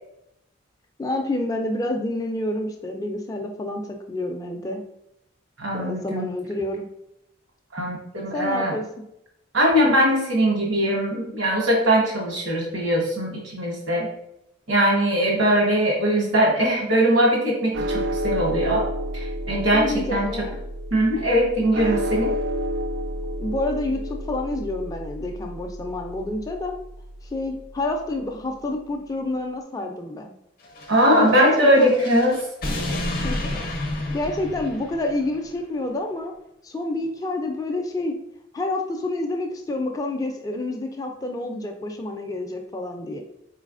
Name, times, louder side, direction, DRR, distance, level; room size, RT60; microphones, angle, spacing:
voice 1, 1.0-4.8 5.7-6.9 8.3-8.8 19.7-20.6 23.4-26.7 27.3-30.3 31.1-31.9 33.2-33.8 34.1-36.3 36.6-38.1 38.5-43.2, left 2 dB, 20° left, 3 dB, 0.3 m, -28 dB
voice 2, 5.6-6.3 7.7-8.7 9.5-14.1 14.7-18.9 19.1-20.3 20.9-22.3 30.9-32.4, equal, 80° right, -1 dB, 1.1 m, -21 dB
sound 1, 17.7-28.2, equal, 60° right, 0.3 m, -30 dB
sound 2, 30.6-35.4, left 1 dB, 50° left, 0.7 m, -31 dB
4.0 x 3.2 x 2.5 m, 0.81 s
head